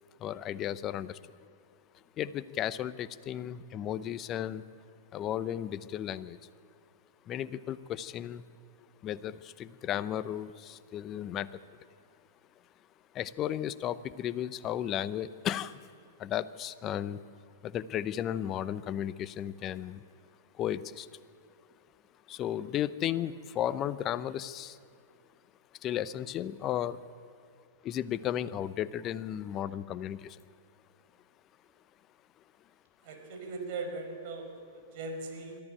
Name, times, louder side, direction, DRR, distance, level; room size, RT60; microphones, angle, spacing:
voice 1, 0.2-1.2 2.2-4.6 5.1-6.4 7.3-8.4 9.0-11.6 13.1-15.9 16.2-17.2 17.6-20.0 20.6-21.1 22.3-24.8 25.8-27.0 27.8-30.4, left 11 dB, 30° left, 15 dB, 0.8 m, -34 dB
voice 2, 33.0-35.6, right 3 dB, 50° right, 4 dB, 5.3 m, -39 dB
22.5 x 14.0 x 9.0 m, 2.3 s
hypercardioid pair, 110°, 0 cm